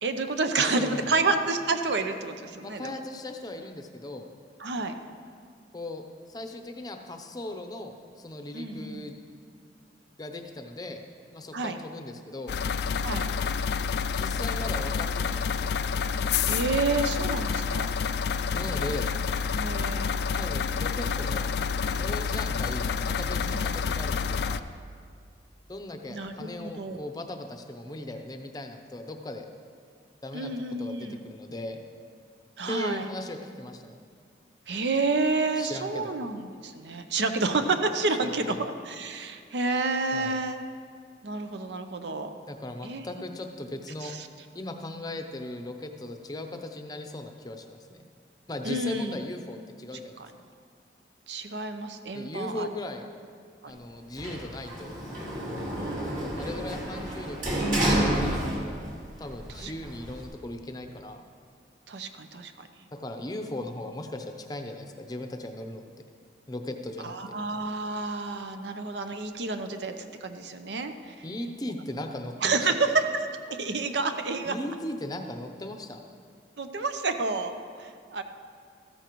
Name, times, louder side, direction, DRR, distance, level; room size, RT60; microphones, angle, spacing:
voice 1, 0.0-3.0 4.6-4.9 8.5-9.0 11.5-11.8 13.0-13.3 16.5-17.9 19.5-20.1 23.5-23.7 26.1-27.0 30.3-31.2 32.6-33.0 34.7-40.6 41.2-42.3 42.8-43.1 44.0-44.3 48.6-49.2 51.3-52.7 53.6-53.7 55.8-56.0 59.6-59.7 61.9-62.7 67.0-71.1 72.4-73.0 73.5-74.5 76.6-78.2, right 3 dB, 75° right, 7 dB, 0.7 m, -29 dB
voice 2, 0.5-1.2 2.6-4.3 5.7-9.1 10.2-11.0 11.3-12.6 14.2-15.9 18.5-19.1 20.4-21.5 22.0-24.6 25.7-29.5 30.2-30.5 30.8-31.8 32.7-34.0 35.6-36.1 38.2-38.7 40.1-40.4 42.5-44.1 44.5-48.0 48.5-50.2 52.1-53.0 53.7-55.0 56.4-58.7 59.2-61.2 62.9-65.8 66.5-67.1 71.2-72.6 74.4-76.1, left 1 dB, 20° left, 5 dB, 0.6 m, -38 dB
sound 1, 12.5-24.6, left 6 dB, 65° left, 0.3 m, -28 dB
Sliding door, 54.2-59.0 59.3-60.3, right 1 dB, 45° right, 2.4 m, -29 dB
14.0 x 13.0 x 3.1 m, 2.1 s
head